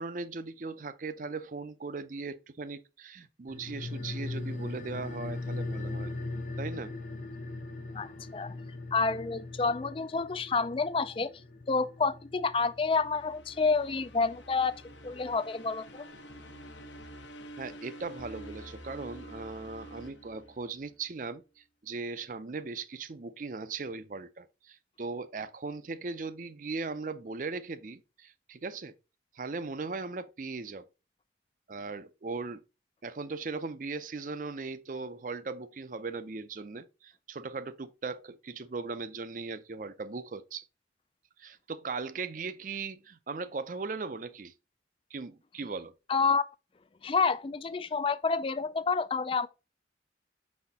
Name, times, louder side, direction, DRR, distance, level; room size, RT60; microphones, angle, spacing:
voice 1, 0.0-6.1 6.6-6.9 17.6-28.9 29.3-30.9 31.7-32.6 33.0-40.6 41.4-44.5 45.1-45.9, right 4 dB, 45° right, 0.5 m, -38 dB
sound 1, 3.5-14.3 14.6-14.7, left 2 dB, 45° left, 0.8 m, -40 dB
voice 2, 7.9-8.5 8.9-11.3 11.7-14.7 15.0-16.1 46.1-46.4 47.0-49.5, left 4 dB, 30° left, 0.3 m, -29 dB
sound 2, 12.7-21.0, equal, 85° left, 1.0 m, -48 dB
5.7 x 4.2 x 4.1 m
head